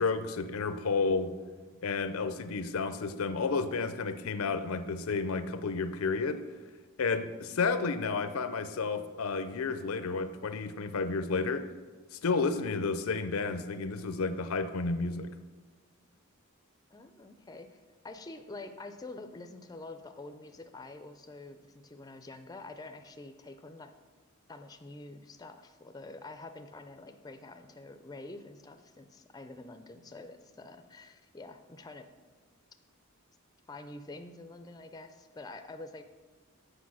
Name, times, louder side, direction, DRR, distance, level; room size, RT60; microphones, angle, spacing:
voice 1, 0.0-1.4 1.8-6.4 7.0-11.7 12.1-15.3, left 4 dB, 80° left, 11 dB, 0.6 m, -31 dB
voice 2, 16.9-17.8 18.0-23.9 24.5-32.1 33.7-36.0, left 2 dB, 20° left, 8 dB, 0.4 m, -47 dB
8.4 x 4.9 x 6.1 m, 1.3 s
head